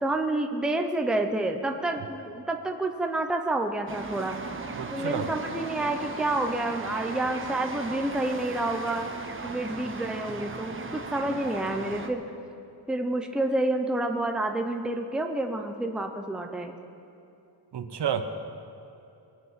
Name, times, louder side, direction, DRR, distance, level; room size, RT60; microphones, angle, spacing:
voice 1, 0.0-4.4 4.9-9.1 9.4-12.2 12.9-16.7, right 2 dB, ahead, 4 dB, 0.7 m, -29 dB
sound 1, 3.9-12.1, right 4 dB, 30° right, 1.0 m, -37 dB
voice 2, 4.7-5.3 17.7-18.2, right 8 dB, 65° right, 8 dB, 1.0 m, -30 dB
23.0 x 9.2 x 5.7 m, 2.8 s
wide cardioid pair, 180°, 44 cm